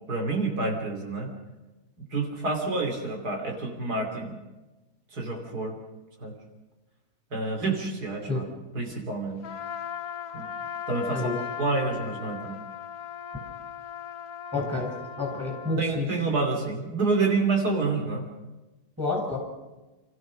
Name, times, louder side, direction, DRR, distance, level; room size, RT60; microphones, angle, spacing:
voice 1, 0.1-1.3 2.1-4.4 5.1-5.8 6.2-6.3 7.3-8.4 8.7-9.4 10.3-10.5 10.9-11.3 11.6-12.6 15.8-18.2, right 3 dB, 80° right, 3 dB, 3.5 m, -28 dB
Trumpet, 9.4-15.9, left 8 dB, 65° left, 1.5 m, -38 dB
voice 2, 14.5-16.1 19.0-19.4, left 2 dB, 10° right, 0 dB, 7.1 m, -29 dB
28.5 x 14.5 x 6.3 m, 1.1 s
omnidirectional pair, 1.7 m